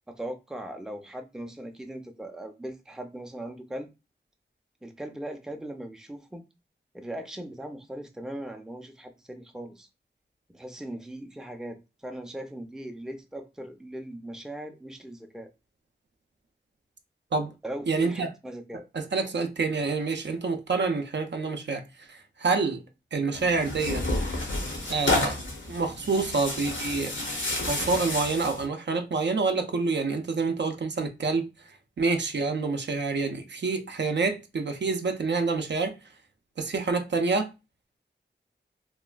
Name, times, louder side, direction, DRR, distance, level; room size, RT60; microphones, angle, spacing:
voice 1, 0.1-3.9 4.8-6.4 6.9-9.9 10.5-15.5 17.6-18.9, right 1 dB, 5° right, 0.4 m, -39 dB
voice 2, 17.9-18.3 18.9-22.8 23.1-24.1 24.9-25.4 25.7-27.1 27.7-36.0 36.6-37.5, right 4 dB, 65° right, 0.4 m, -27 dB
Tearing, 23.3-28.7, left 2 dB, 85° left, 0.8 m, -30 dB
3.0 x 2.2 x 2.4 m
wide cardioid pair, 50°, 19 cm